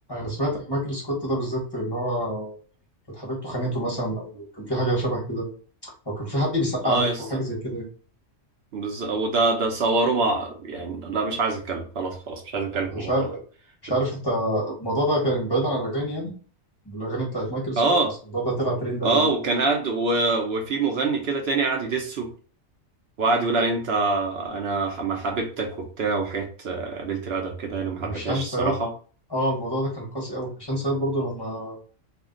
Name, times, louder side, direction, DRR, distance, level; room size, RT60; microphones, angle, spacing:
voice 1, 0.1-2.6 3.1-5.5 5.8-7.8 12.9-13.4 13.8-16.3 16.8-17.8 18.3-19.3 28.0-28.8 29.3-31.8, right 1 dB, 20° left, -3 dB, 0.9 m, -27 dB
voice 2, 6.8-7.2 8.7-13.3 17.8-18.1 19.0-22.3 23.2-28.9, right 3 dB, 60° right, 2 dB, 0.8 m, -25 dB
2.5 x 2.2 x 3.7 m, 0.41 s
omnidirectional pair, 1.3 m